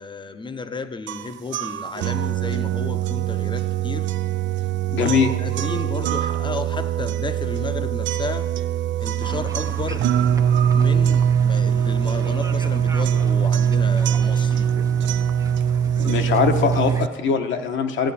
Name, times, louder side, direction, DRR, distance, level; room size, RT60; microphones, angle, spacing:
voice 1, 0.0-4.1 5.0-8.5 9.0-10.1 10.7-14.7, left 4 dB, 25° left, 0.7 m, -33 dB
sound 1, 1.1-17.1, right 9 dB, 70° right, 0.4 m, -22 dB
voice 2, 4.9-5.3 15.9-18.1, left 6 dB, 75° left, 1.1 m, -21 dB
sound 2, 9.2-17.0, right 3 dB, 15° right, 0.5 m, -37 dB
14.5 x 9.1 x 4.2 m
cardioid pair, 90°, 20 cm